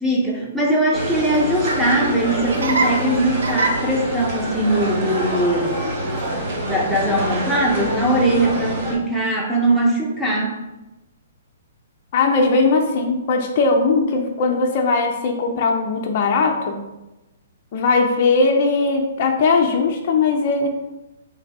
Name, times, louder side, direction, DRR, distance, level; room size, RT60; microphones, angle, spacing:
voice 1, 0.0-5.8 6.6-10.6, right 1 dB, 5° right, -3 dB, 0.8 m, -20 dB
sound 1, 0.9-8.9, equal, 45° right, 1.1 m, -26 dB
Laughter, 1.2-8.6, right 2 dB, 80° right, 0.7 m, -29 dB
voice 2, 12.1-16.8 17.7-20.7, left 3 dB, 45° left, 3 dB, 0.5 m, -19 dB
3.3 x 3.2 x 4.1 m, 1.0 s
hypercardioid pair, 145°, 0 cm